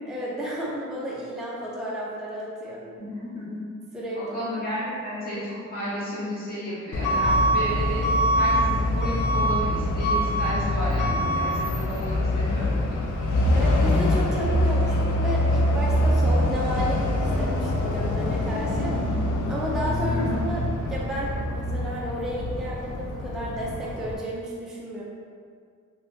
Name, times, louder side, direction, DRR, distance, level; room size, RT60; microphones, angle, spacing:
voice 1, 0.1-2.9 3.9-4.4 13.5-19.1 19.5-20.6 20.9-25.0, equal, ahead, -6 dB, 0.4 m, -32 dB
voice 2, 3.0-3.6 4.1-5.4 5.7-8.0 8.4-13.0 20.0-20.4, left 1 dB, 30° left, -11 dB, 1.4 m, -32 dB
Truck / Alarm, 6.9-24.2, left 1 dB, 70° left, 0.5 m, -24 dB
2.7 x 2.2 x 3.3 m, 2.1 s
wide cardioid pair, 100°, 32 cm